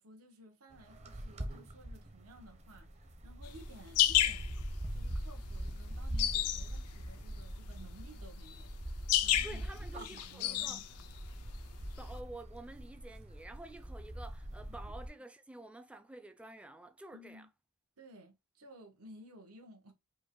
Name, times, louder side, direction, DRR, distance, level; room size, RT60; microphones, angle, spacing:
voice 1, 0.0-4.5 4.9-9.7 10.0-11.1 14.7-14.9 17.1-17.5 18.0-19.9, equal, 75° right, 1.1 m, -56 dB
sound 1, 0.7-15.1, right 1 dB, 30° right, 0.7 m, -43 dB
sound 2, 3.4-12.2, left 12 dB, 90° left, 0.4 m, -32 dB
voice 2, 9.4-10.8 12.0-17.5, right 2 dB, 5° right, 0.4 m, -50 dB
5.2 x 2.2 x 3.7 m
head